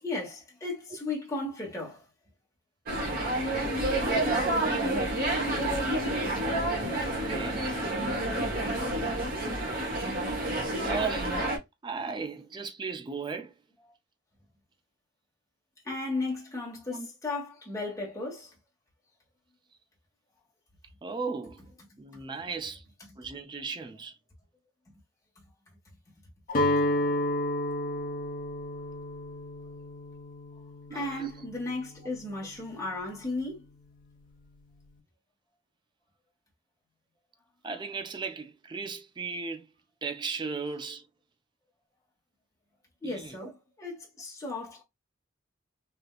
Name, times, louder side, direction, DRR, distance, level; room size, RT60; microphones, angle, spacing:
voice 1, 0.0-2.0 15.8-18.5 30.9-33.7 43.0-44.8, left 2 dB, 15° left, 1.4 m, -35 dB
sound 1, 2.9-11.6, right 1 dB, 50° right, 1.1 m, -29 dB
voice 2, 7.1-7.7 10.0-10.1 10.8-11.4 11.8-13.5 16.9-17.1 21.0-21.7 22.0-22.8 23.2-24.1 30.9-31.3 37.6-39.7 40.0-41.0 43.0-43.5, right 4 dB, 25° right, 0.4 m, -36 dB
Guitar, 26.5-32.5, left 1 dB, 45° left, 0.9 m, -31 dB
3.3 x 2.7 x 2.3 m
head